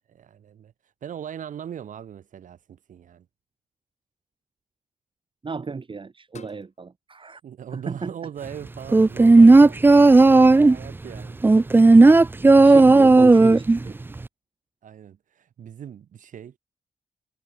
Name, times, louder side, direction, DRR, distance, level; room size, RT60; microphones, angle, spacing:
voice 1, 0.1-0.7 1.0-3.3 7.4-11.4 14.8-16.6, right 9 dB, 80° right, 4.5 m, -40 dB
voice 2, 5.4-7.4 7.7-8.1 12.6-14.0, right 4 dB, 40° right, 1.9 m, -33 dB
sound 1, 6.3-6.7 7.9-8.2 9.8-10.5, left 6 dB, 60° left, 3.5 m, -49 dB
sound 2, 8.9-10.8 11.4-13.8 14.2-14.3, right 3 dB, 15° right, 0.4 m, -12 dB
cardioid pair, 65°, 13 cm